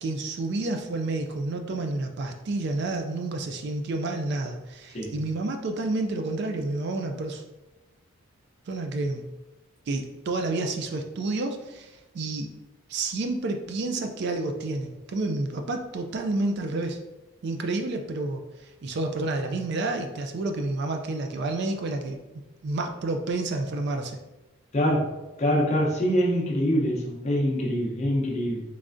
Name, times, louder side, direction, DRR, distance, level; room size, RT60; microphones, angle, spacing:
voice 1, 0.0-7.4 8.7-9.3 9.9-12.5 12.9-17.0 17.4-22.2 22.6-24.2, right 2 dB, 50° right, 5 dB, 0.3 m, -30 dB
voice 2, 24.7-25.1 25.4-28.6, equal, 30° left, -3 dB, 0.7 m, -24 dB
3.6 x 3.2 x 2.5 m, 1.0 s
head